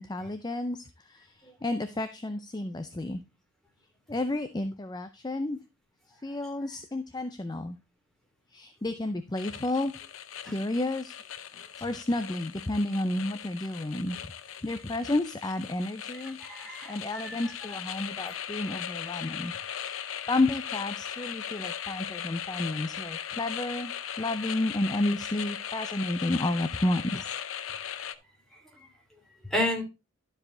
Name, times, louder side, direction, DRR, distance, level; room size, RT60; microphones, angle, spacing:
voice 1, 0.0-3.2 4.1-5.6 6.2-7.8 8.5-9.9 10.4-11.1 11.8-14.2 14.6-16.4 16.9-19.5 20.3-27.3, left 2 dB, 20° left, 10 dB, 0.5 m, -31 dB
sound 1, 9.4-28.2, left 9 dB, 85° left, 0.6 m, -38 dB
voice 2, 16.1-17.8 28.5-28.9 29.4-29.8, left 1 dB, ahead, 0 dB, 2.7 m, -33 dB
12.0 x 4.9 x 3.8 m, 0.25 s
head